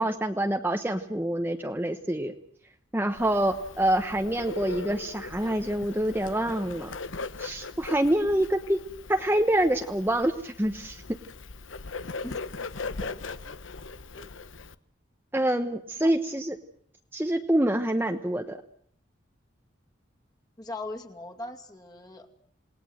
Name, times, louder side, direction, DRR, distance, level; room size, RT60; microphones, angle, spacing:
voice 1, 0.0-2.3 2.9-6.9 7.4-8.8 9.1-11.0 15.3-16.6 17.1-18.6, right 1 dB, 10° right, 5 dB, 1.0 m, -26 dB
Bird, 3.1-14.7, left 3 dB, 85° left, 1.1 m, -39 dB
voice 2, 20.6-22.3, left 2 dB, 20° left, 3 dB, 2.4 m, -40 dB
28.0 x 19.0 x 7.8 m, 0.65 s
head